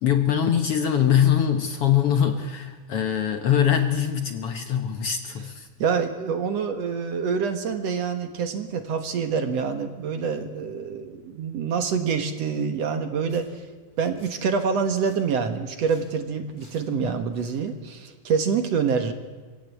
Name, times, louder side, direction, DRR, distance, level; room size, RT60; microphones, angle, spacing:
voice 1, 0.0-5.7, left 9 dB, 60° left, 6 dB, 1.8 m, -22 dB
voice 2, 5.8-13.6 14.0-19.1, right 6 dB, 60° right, 7 dB, 2.3 m, -26 dB
Domestic sounds home sounds, 13.3-13.4 13.9-14.3 14.8-15.2 15.8-16.1 16.6-16.8 17.2-17.5, equal, 15° left, 7.6 m, -54 dB
25.0 x 16.5 x 8.4 m, 1.3 s
omnidirectional pair, 3.6 m